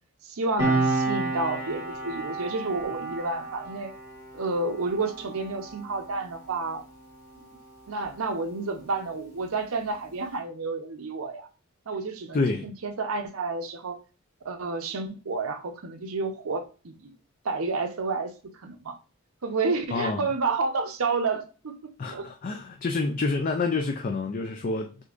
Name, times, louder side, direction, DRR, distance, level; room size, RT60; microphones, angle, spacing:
voice 1, 0.2-3.9 4.3-6.8 7.4-7.5 7.9-11.5 11.9-14.0 14.4-17.1 17.4-19.0 19.4-22.3, right 3 dB, 85° right, 0.8 m, -30 dB
Piano, 0.6-7.6 7.9-8.1, right 3 dB, 20° right, 2.0 m, -31 dB
voice 2, 12.3-12.7 19.9-20.3 22.0-24.9, left 3 dB, 40° left, 0.4 m, -28 dB
6.4 x 2.7 x 2.4 m
head